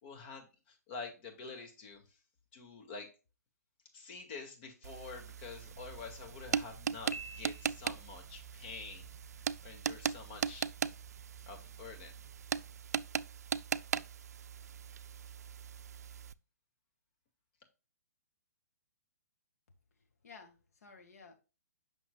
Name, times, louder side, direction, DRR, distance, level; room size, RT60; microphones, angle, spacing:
voice 1, 0.0-2.2 2.5-3.1 3.9-9.1 9.6-10.7 11.5-12.2, left 4 dB, 40° left, 2.2 m, -47 dB
sound 1, 4.8-16.3, right 7 dB, 70° right, 0.4 m, -39 dB
sound 2, 5.6-12.8, right 2 dB, 5° right, 4.1 m, -61 dB
Piano, 7.1-8.2, right 2 dB, 85° left, 1.1 m, -47 dB
voice 2, 19.9-21.3, left 5 dB, 65° left, 1.9 m, -55 dB
8.0 x 6.0 x 2.4 m
hypercardioid pair, 140°, 9 cm